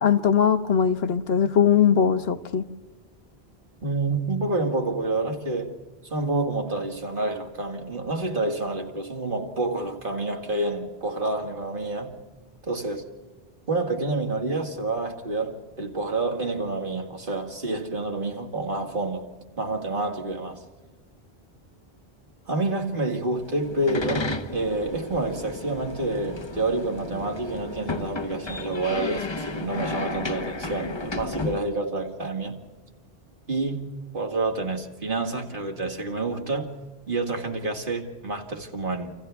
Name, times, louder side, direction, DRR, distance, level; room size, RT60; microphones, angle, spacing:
voice 1, 0.0-2.6, left 7 dB, 75° left, 1.1 m, -20 dB
voice 2, 3.8-5.8 6.1-12.2 12.7-13.1 13.7-19.3 19.6-20.6 22.5-32.6 33.5-36.8 37.1-39.2, right 2 dB, 55° right, 2.2 m, -28 dB
sound 1, 23.3-31.6, left 2 dB, 30° left, 0.8 m, -33 dB
29.5 x 26.5 x 3.5 m
omnidirectional pair, 1.1 m